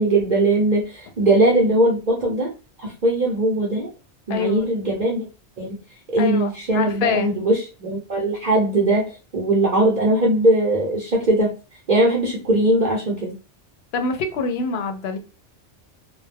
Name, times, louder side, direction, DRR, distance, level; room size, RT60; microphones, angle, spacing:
voice 1, 0.0-2.5 2.8-3.9 4.3-5.3 5.6-5.8 6.1-9.0 9.3-11.5 11.9-13.3, right 1 dB, 45° right, -2 dB, 0.8 m, -20 dB
voice 2, 4.3-4.6 6.2-7.4 13.9-15.2, left 5 dB, 70° left, 6 dB, 0.8 m, -25 dB
2.2 x 2.1 x 3.2 m, 0.32 s
omnidirectional pair, 1.2 m